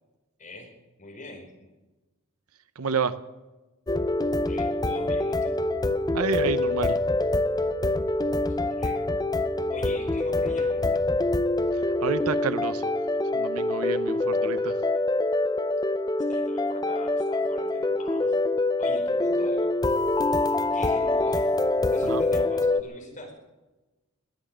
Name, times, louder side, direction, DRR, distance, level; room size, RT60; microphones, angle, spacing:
voice 1, 0.4-0.7 1.0-1.5 4.5-5.6 8.5-9.1 9.7-11.0 14.1-14.5 16.3-18.4 18.8-19.7 20.7-21.5 21.9-23.4, left 1 dB, 35° left, 1 dB, 4.7 m, -42 dB
voice 2, 2.8-3.1 6.1-7.0 11.7-12.9 13.3-14.7 22.0-22.2, right 5 dB, 70° right, 13 dB, 0.8 m, -29 dB
sound 1, 3.9-22.8, left 2 dB, 20° left, 0.6 m, -25 dB
21.0 x 9.1 x 7.5 m, 1.1 s
head